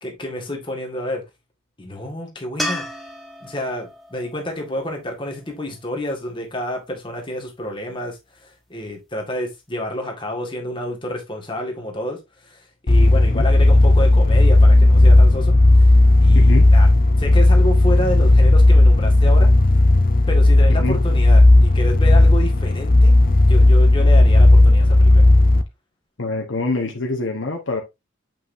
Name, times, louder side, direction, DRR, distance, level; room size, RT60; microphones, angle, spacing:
voice 1, 0.0-1.2 1.8-2.8 3.4-15.6 16.2-16.9 17.2-19.5 20.3-23.2 23.4-25.2, left 1 dB, 25° left, 1.8 m, -29 dB
sound 1, 2.6-5.8 9.1-9.2, left 1 dB, ahead, 1.0 m, -33 dB
sound 2, 12.9-25.6, left 2 dB, 45° left, 0.6 m, -13 dB
voice 2, 16.3-16.7 20.7-21.0 26.2-27.8, left 2 dB, 65° left, 1.2 m, -25 dB
7.4 x 5.6 x 2.7 m
head